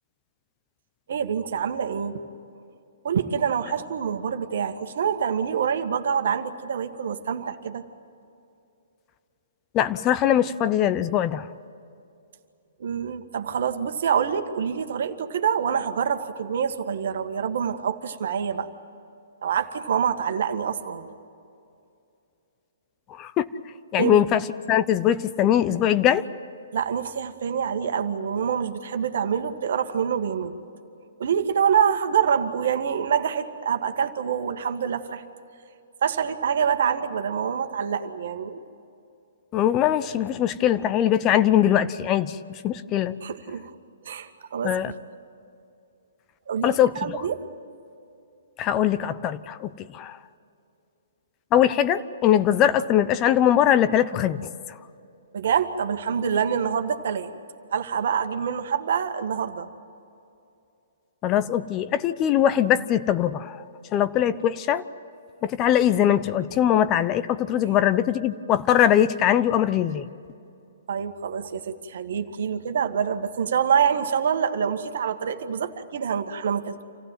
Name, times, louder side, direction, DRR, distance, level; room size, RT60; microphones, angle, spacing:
voice 1, 1.1-2.2 3.0-7.8 12.8-18.7 19.4-21.1 24.0-24.2 26.7-30.6 31.2-35.2 36.0-38.6 43.2-43.7 44.0-44.9 46.5-47.4 55.3-57.3 57.7-59.7 70.9-76.8, right 7 dB, 65° right, 7 dB, 1.6 m, -26 dB
voice 2, 9.7-11.5 23.2-23.5 23.9-24.4 24.7-26.2 39.5-43.2 44.6-44.9 46.6-47.2 48.6-50.2 51.5-54.5 61.2-63.6 63.9-64.8 65.4-70.0, left 10 dB, 30° left, 14 dB, 0.7 m, -21 dB
27.0 x 15.5 x 9.3 m, 2.6 s
hypercardioid pair, 130°, 0 cm